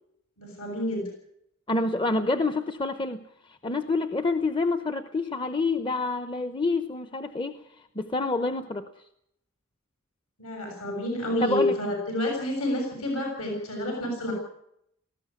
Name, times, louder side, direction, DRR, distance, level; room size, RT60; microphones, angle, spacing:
voice 1, 0.4-1.1 10.4-14.3, left 1 dB, 75° left, 1 dB, 7.3 m, -29 dB
voice 2, 1.7-7.6 8.0-8.9 11.4-11.7, left 3 dB, 20° left, 10 dB, 0.8 m, -27 dB
19.5 x 15.5 x 9.6 m, 0.75 s
head